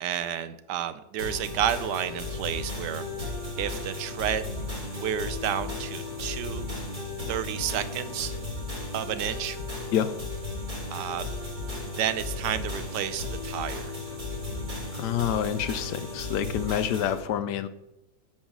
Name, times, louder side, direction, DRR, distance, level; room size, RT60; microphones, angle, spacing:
voice 1, 0.0-4.5 5.0-6.7 7.3-8.3 8.9-9.6 10.9-11.2 11.9-14.0, right 10 dB, 75° right, 13 dB, 1.1 m, -31 dB
sound 1, 1.2-17.2, left 2 dB, 55° right, 3.5 m, -35 dB
sound 2, 2.2-17.0, right 1 dB, 30° right, 3.2 m, -53 dB
voice 2, 14.9-17.7, left 10 dB, 75° left, 12 dB, 1.1 m, -27 dB
8.7 x 5.6 x 6.0 m, 0.88 s
omnidirectional pair, 1.9 m